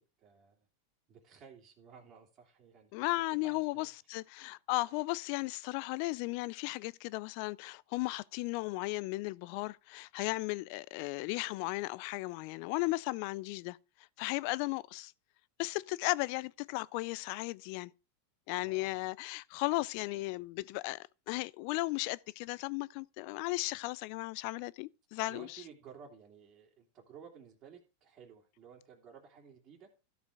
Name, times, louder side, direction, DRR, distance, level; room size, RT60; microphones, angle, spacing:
voice 1, 0.2-0.7 1.1-2.9 3.4-3.9 18.6-19.0 25.3-29.9, right 7 dB, 40° right, 2.6 m, -55 dB
voice 2, 2.9-13.8 14.2-15.1 15.6-17.9 18.5-25.6, left 21 dB, 55° left, 0.4 m, -35 dB
13.5 x 5.0 x 4.8 m
hypercardioid pair, 110°, 0 cm